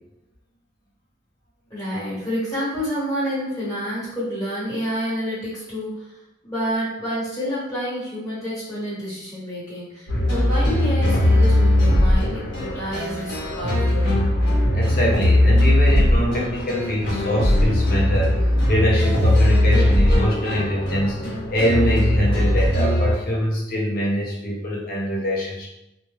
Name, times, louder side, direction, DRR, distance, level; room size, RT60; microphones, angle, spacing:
voice 1, 1.7-6.1 6.4-14.2, equal, 20° left, -10 dB, 1.2 m, -28 dB
sound 1, 10.1-23.1, left 1 dB, 85° left, 0.9 m, -19 dB
voice 2, 14.7-18.3 18.7-25.7, equal, 50° left, -3 dB, 0.6 m, -23 dB
2.2 x 2.1 x 3.0 m, 0.87 s
head